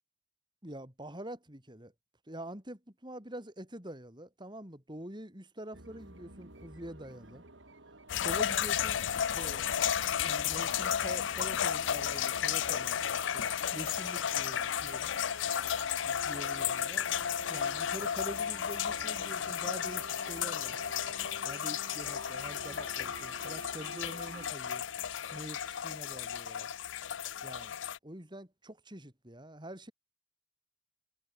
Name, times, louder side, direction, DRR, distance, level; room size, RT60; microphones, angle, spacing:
voice 1, 0.6-1.9 2.3-7.4 8.2-9.6 10.1-15.1 16.1-17.1 17.5-20.8 21.4-24.8 25.3-26.7 27.4-27.8 28.0-29.9, right 1 dB, 25° right, 5.4 m, -46 dB
sound 1, 5.7-24.5, right 2 dB, 75° right, 3.9 m, -50 dB
sound 2, 8.1-28.0, left 9 dB, 70° left, 0.5 m, -33 dB
head